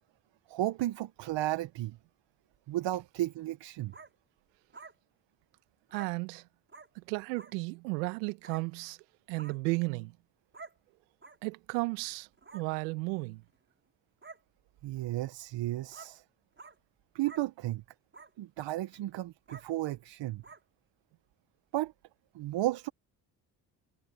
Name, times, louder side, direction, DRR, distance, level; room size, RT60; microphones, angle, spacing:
voice 1, 0.5-2.0 2.7-3.9 14.8-16.2 17.1-17.8 18.4-20.4 21.7-21.9 22.3-22.9, right 15 dB, 60° right, 1.6 m, -33 dB
sound 1, 3.9-4.1 4.7-4.9 5.9-6.1 6.7-6.9 7.3-7.5 8.4-8.6 9.3-9.6 10.5-10.7 11.2-11.4 12.4-12.6 13.5-13.6 14.2-14.4 15.0-15.1 15.9-16.1 16.6-16.7 17.2-17.4 18.1-18.3 18.8-19.0 19.5-19.6 20.4-20.6, right 4 dB, 25° right, 6.5 m, -49 dB
voice 2, 5.9-6.4 6.9-9.0 9.3-10.1 11.4-12.3 12.5-13.4, right 27 dB, 80° right, 1.7 m, -34 dB
hypercardioid pair, 55°, 49 cm